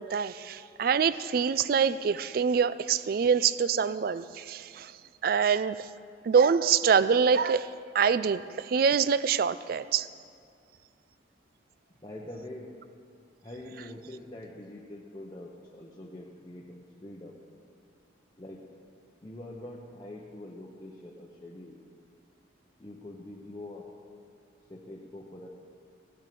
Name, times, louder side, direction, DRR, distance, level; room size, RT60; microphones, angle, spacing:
voice 1, 0.0-4.9 5.2-5.9 6.2-10.1, right 6 dB, 50° right, 15 dB, 0.3 m, -25 dB
voice 2, 12.0-12.8 13.4-17.4 18.4-18.7 19.2-21.8 22.8-24.0 24.7-25.5, left 1 dB, 20° left, -3 dB, 0.8 m, -44 dB
15.5 x 7.2 x 6.8 m, 2.4 s
head